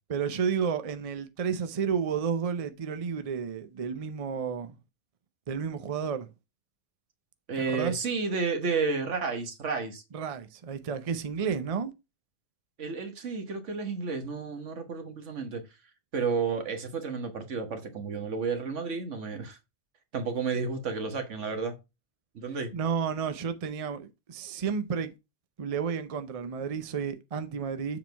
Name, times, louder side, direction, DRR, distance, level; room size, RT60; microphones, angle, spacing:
voice 1, 0.1-4.8 5.5-6.3 7.7-8.0 10.1-11.9 22.7-25.1 25.6-28.0, right 6 dB, 40° right, 0.6 m, -31 dB
voice 2, 7.5-10.0 12.8-15.6 16.1-19.6 20.1-21.7 22.3-22.7, right 5 dB, 80° right, 1.6 m, -31 dB
7.2 x 3.8 x 4.5 m
omnidirectional pair, 1.2 m